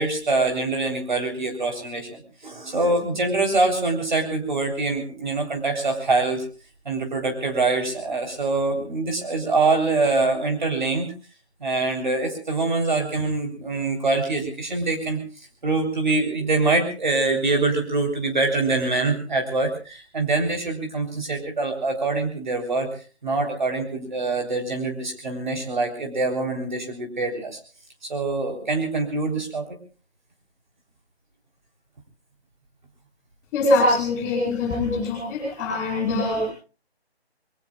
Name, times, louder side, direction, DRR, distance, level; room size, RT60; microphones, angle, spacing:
voice 1, 0.0-6.5 6.9-11.1 11.6-15.2 15.6-22.9 23.2-27.6 28.0-29.8, right 3 dB, 45° right, 3 dB, 3.8 m, -24 dB
voice 2, 33.5-36.5, left 2 dB, 10° left, 0 dB, 7.9 m, -23 dB
25.0 x 23.0 x 2.4 m, 0.35 s
figure-of-eight pair, 165°, 33 cm